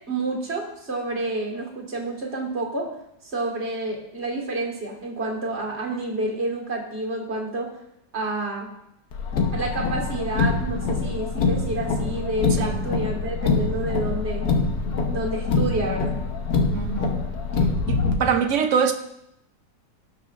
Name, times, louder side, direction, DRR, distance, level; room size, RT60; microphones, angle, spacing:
voice 1, 0.1-2.9 3.2-7.7 8.1-8.7 9.5-14.4 15.1-16.1, right 2 dB, 35° right, -1 dB, 2.0 m, -29 dB
Car, 9.1-18.1, left 4 dB, 60° left, 1.5 m, -24 dB
voice 2, 16.7-17.2 17.9-18.9, right 7 dB, 60° right, 7 dB, 0.8 m, -23 dB
17.5 x 6.3 x 2.5 m, 0.81 s
omnidirectional pair, 1.9 m